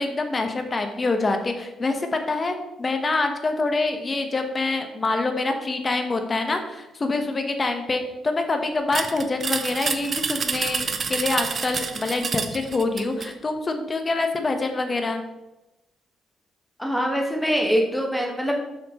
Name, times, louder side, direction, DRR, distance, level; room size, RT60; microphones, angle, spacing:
voice 1, 0.0-15.2, left 3 dB, 30° left, 6 dB, 1.0 m, -26 dB
sound 1, 8.9-13.3, right 5 dB, 45° right, 0.6 m, -28 dB
voice 2, 16.8-18.6, equal, 5° left, 1 dB, 1.4 m, -23 dB
7.7 x 5.9 x 3.0 m, 0.99 s
cardioid pair, 90°, 0 cm